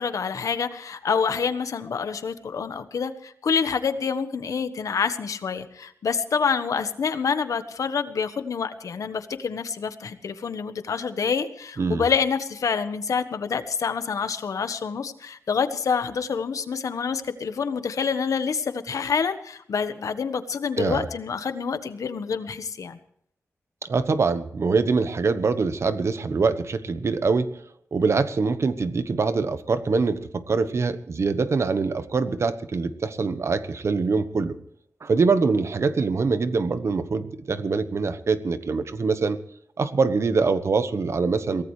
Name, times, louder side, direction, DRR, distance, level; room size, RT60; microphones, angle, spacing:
voice 1, 0.0-23.0, left 6 dB, 90° left, 10 dB, 1.3 m, -27 dB
voice 2, 23.8-27.6 27.9-34.5 35.0-39.4 39.8-41.6, right 4 dB, 55° right, 12 dB, 1.2 m, -24 dB
23.0 x 17.5 x 3.2 m, 0.66 s
wide cardioid pair, 140°, 6 cm